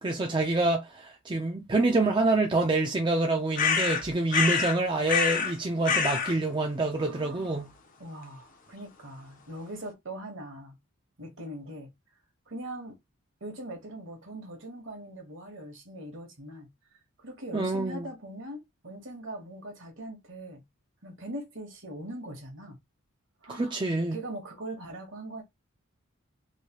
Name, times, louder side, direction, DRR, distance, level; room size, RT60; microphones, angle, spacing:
voice 1, 0.0-7.7 17.5-18.0 23.5-24.2, right 2 dB, 20° right, 0.4 m, -27 dB
sound 1, 3.6-4.8 5.1-5.5 5.8-6.4, left 6 dB, 40° left, 0.6 m, -26 dB
voice 2, 7.0-7.7 8.0-10.8 11.2-11.9 12.5-13.0 13.4-16.7 17.2-20.6 21.0-22.8 23.4-23.8 24.1-25.4, right 1 dB, 60° right, 1.2 m, -41 dB
3.1 x 2.6 x 2.9 m
head